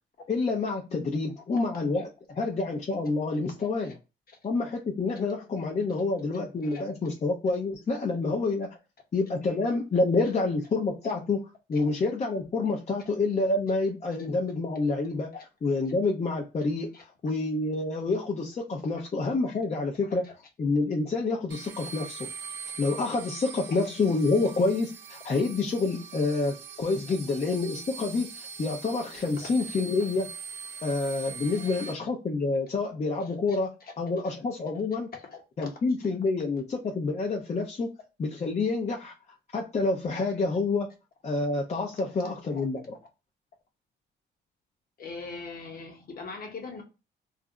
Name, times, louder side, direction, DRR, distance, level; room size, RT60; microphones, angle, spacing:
voice 1, 0.3-3.9 4.4-8.7 9.1-15.3 15.6-20.2 20.6-22.3 22.8-30.3 30.8-35.1 35.6-37.9 38.2-39.1 39.5-40.9 41.2-42.9, left 3 dB, 35° left, -1 dB, 0.6 m, -28 dB
voice 2, 3.3-3.9 4.3-4.4 6.6-6.8 9.4-9.6 11.7-11.8 15.3-15.4 16.9-17.0 20.2-20.3 23.7-23.8 29.4-29.5 33.2-33.9 34.2-34.4 34.7-34.8 35.1-35.7 42.2-42.6 45.0-46.8, left 4 dB, 50° left, 2 dB, 1.0 m, -43 dB
sound 1, 21.5-31.9, right 6 dB, 65° right, 0.5 m, -42 dB
2.4 x 2.0 x 3.6 m, 0.29 s
cardioid pair, 90°, 20 cm